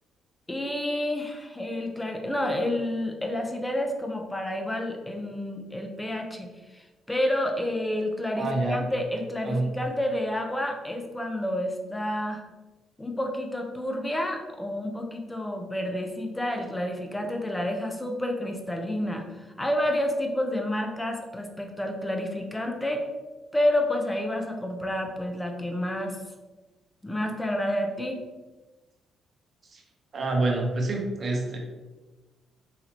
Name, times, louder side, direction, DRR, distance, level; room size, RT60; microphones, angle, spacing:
voice 1, 0.5-12.4 13.0-23.1 23.5-26.2 27.0-28.2, left 1 dB, 10° left, 3 dB, 0.6 m, -29 dB
voice 2, 8.3-8.8 9.4-9.6 29.7-29.8 30.1-31.6, right 2 dB, 45° right, 1 dB, 0.8 m, -27 dB
4.0 x 2.9 x 2.9 m, 1.2 s
cardioid pair, 90°, 0 cm